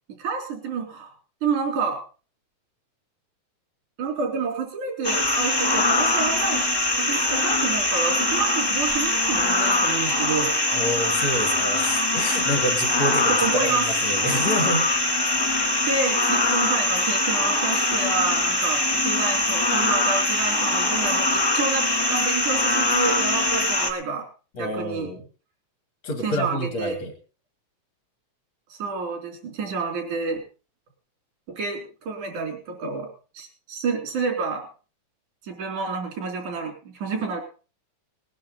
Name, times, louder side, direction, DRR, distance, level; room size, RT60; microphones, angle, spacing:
voice 1, 0.2-1.1 1.4-2.0 4.0-6.7 7.0-10.5 13.4-13.9 15.9-24.3 24.6-25.1 26.2-27.0 28.7-30.4 31.5-33.1 33.4-34.7 35.4-37.4, right 4 dB, 90° right, 2 dB, 5.2 m, -29 dB
sound 1, 5.0-23.9, left 1 dB, 15° left, 0.7 m, -22 dB
voice 2, 10.7-14.9 24.6-25.2 26.0-27.1, left 1 dB, 60° left, 4 dB, 3.9 m, -28 dB
20.0 x 10.5 x 4.1 m, 0.35 s
omnidirectional pair, 3.4 m